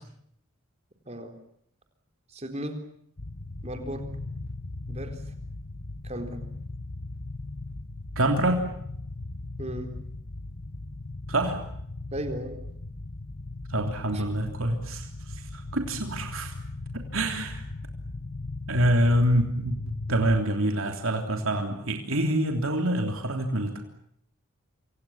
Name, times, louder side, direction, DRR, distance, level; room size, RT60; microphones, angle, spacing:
voice 1, 1.1-1.4 2.3-2.8 3.6-4.1 4.9-5.2 6.0-6.4 9.6-9.9 12.1-12.6 14.1-14.2, right 1 dB, 30° right, 6 dB, 4.0 m, -35 dB
sound 1, 3.2-20.4, left 2 dB, 50° left, 1.3 m, -38 dB
voice 2, 8.2-8.6 11.3-11.6 13.7-16.6 17.1-17.6 18.7-23.8, right 1 dB, 65° right, 3 dB, 3.3 m, -26 dB
27.0 x 26.0 x 7.3 m, 0.69 s
head